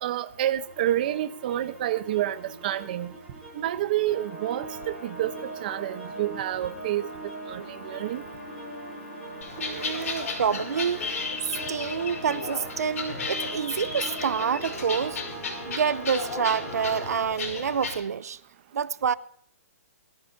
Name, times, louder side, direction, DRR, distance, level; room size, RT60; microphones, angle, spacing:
voice 1, 0.0-3.1 3.5-7.1 7.5-8.2, right 12 dB, 35° right, 0.9 m, -29 dB
sound 1, 0.7-17.2, right 2 dB, ahead, 7.0 m, -40 dB
sound 2, 9.4-18.0, left 4 dB, 65° left, 5.7 m, -34 dB
voice 2, 9.6-11.1 11.4-15.2 15.7-18.4 18.7-19.1, right 7 dB, 90° right, 0.7 m, -28 dB
21.5 x 15.0 x 2.7 m
hypercardioid pair, 170°, 8 cm